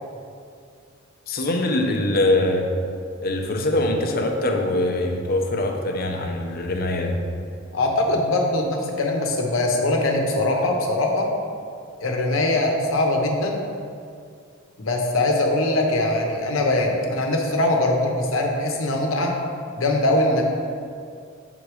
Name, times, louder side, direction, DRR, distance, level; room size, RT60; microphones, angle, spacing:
voice 1, 1.3-2.7 3.2-7.2, left 1 dB, 50° left, 3 dB, 0.6 m, -23 dB
voice 2, 7.7-11.3 12.0-13.6 14.8-19.3 19.8-20.4, left 2 dB, 85° left, 1 dB, 0.8 m, -22 dB
6.1 x 3.8 x 4.8 m, 2.3 s
head